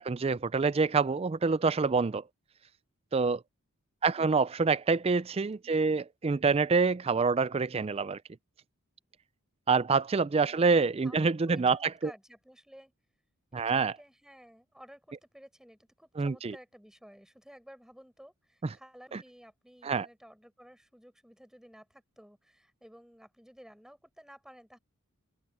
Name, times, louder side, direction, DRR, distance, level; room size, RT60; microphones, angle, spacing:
voice 1, 0.0-2.2 3.1-3.4 4.0-8.2 9.7-12.1 13.5-13.9 16.2-16.6 19.1-19.2 19.8-20.1, right 4 dB, 25° right, 0.4 m, -26 dB
voice 2, 5.6-6.1 11.0-11.2 11.5-12.9 13.5-24.8, equal, 5° right, 6.9 m, -54 dB
open air
head